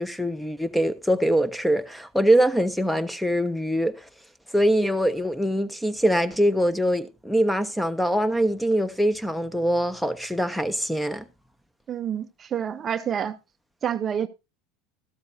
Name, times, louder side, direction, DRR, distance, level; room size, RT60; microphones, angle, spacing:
voice 1, 0.0-3.9 4.5-11.2, equal, ahead, 1.1 m, -23 dB
voice 2, 11.9-13.4 13.8-14.3, right 8 dB, 35° right, 0.6 m, -28 dB
14.0 x 13.0 x 2.6 m
hypercardioid pair, 80°, 0 cm